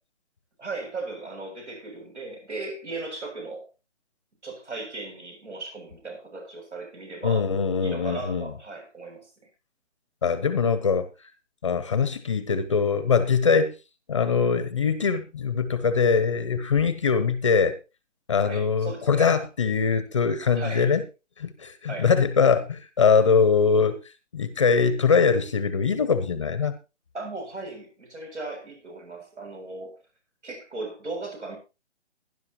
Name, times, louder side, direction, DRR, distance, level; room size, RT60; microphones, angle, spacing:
voice 1, 0.6-3.7 4.4-7.5 7.8-9.3 18.4-19.3 20.6-20.9 21.9-22.1 27.1-30.0 30.4-31.6, right 3 dB, 75° right, 7.5 m, -37 dB
voice 2, 7.2-8.5 10.2-11.1 11.6-13.7 14.1-17.8 18.3-21.0 21.4-24.0 24.3-26.7, left 5 dB, 25° left, 0.8 m, -22 dB
17.5 x 11.0 x 3.0 m
hypercardioid pair, 160°, 36 cm